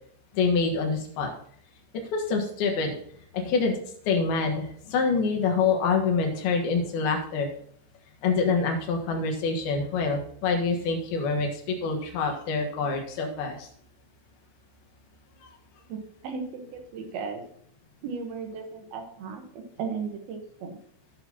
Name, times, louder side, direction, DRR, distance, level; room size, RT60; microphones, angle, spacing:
voice 1, 0.3-1.3 2.1-2.9 3.3-3.8 4.1-7.5 8.2-13.7 15.4-15.5, left 4 dB, 65° left, 2 dB, 3.1 m, -26 dB
voice 2, 15.9-17.4 18.0-20.8, right 5 dB, 70° right, 4 dB, 2.6 m, -36 dB
16.5 x 6.7 x 2.9 m, 0.64 s
omnidirectional pair, 5.4 m